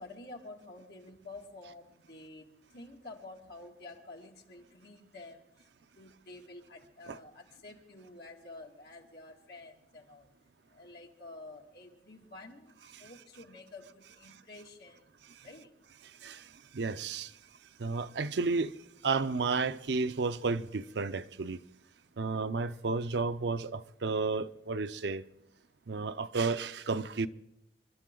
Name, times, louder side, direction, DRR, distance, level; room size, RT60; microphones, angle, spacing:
voice 1, 0.0-5.7 6.0-10.3 10.7-15.1 15.4-15.7, left 2 dB, 60° left, 2.3 m, -50 dB
voice 2, 16.0-17.4 17.8-18.7 19.0-21.6 22.2-25.2 25.9-27.3, right 4 dB, 75° right, 0.6 m, -32 dB
29.0 x 12.5 x 3.8 m
head